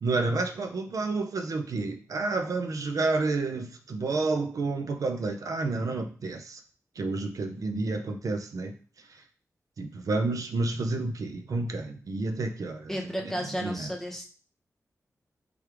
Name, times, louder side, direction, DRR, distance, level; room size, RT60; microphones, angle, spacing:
voice 1, 0.0-6.6 7.0-8.7 9.8-12.9 13.2-13.3 13.6-13.9, right 3 dB, 70° right, 5 dB, 0.6 m, -30 dB
voice 2, 12.9-14.3, equal, 5° left, 0 dB, 0.8 m, -33 dB
3.5 x 3.2 x 4.6 m, 0.38 s
wide cardioid pair, 160°, 6 cm